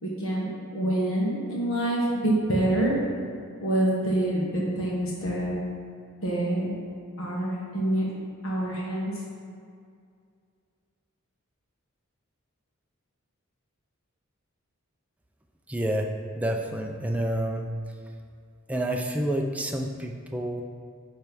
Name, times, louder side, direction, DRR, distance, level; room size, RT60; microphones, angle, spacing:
voice 1, 0.0-2.9 3.6-5.6 6.2-6.8 7.2-8.1 8.4-9.1, right 1 dB, 70° left, -4 dB, 1.4 m, -26 dB
voice 2, 15.7-16.1 16.3-17.7 18.7-20.6, right 1 dB, 5° right, 2 dB, 0.4 m, -28 dB
9.1 x 3.3 x 5.3 m, 2.3 s
head